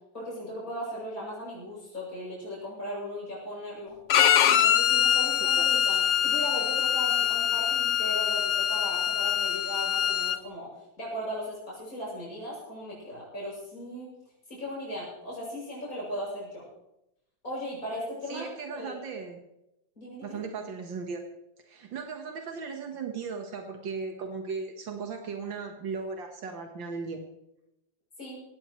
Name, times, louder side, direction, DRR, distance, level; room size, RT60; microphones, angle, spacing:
voice 1, 0.1-4.0 4.5-10.7 11.0-14.1 14.5-16.7 17.4-18.9 20.0-20.4 28.2-28.4, equal, 45° left, -5 dB, 7.3 m, -37 dB
Bowed string instrument, 4.1-10.4, left 10 dB, 85° left, 0.6 m, -24 dB
voice 2, 18.3-19.4 20.2-21.2 21.7-27.2, right 5 dB, 75° right, 4 dB, 2.1 m, -37 dB
17.5 x 17.0 x 3.1 m, 0.86 s
omnidirectional pair, 2.0 m